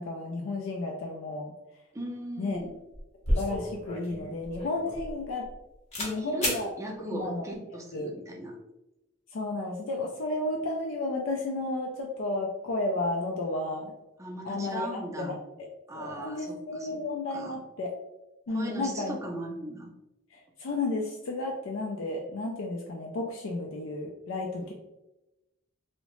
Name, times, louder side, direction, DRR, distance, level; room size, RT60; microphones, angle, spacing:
voice 1, 0.0-1.5 2.4-2.6 3.3-5.5 6.0-6.7 7.0-7.4 7.9-8.1 9.3-13.9 14.4-15.7 15.9-17.9 18.5-19.2 20.3-24.7, left 2 dB, 70° left, 0 dB, 0.4 m, -32 dB
voice 2, 1.9-2.7 6.0-8.6 14.2-15.3 15.9-16.5 16.8-17.0 17.3-17.6 18.5-19.9, right 1 dB, 15° right, 0 dB, 0.4 m, -38 dB
sound 1, 2.6-2.7 2.9-5.6 5.9-6.1 6.4-6.6, left 1 dB, 35° left, 0.8 m, -31 dB
2.7 x 2.0 x 2.9 m, 0.97 s
head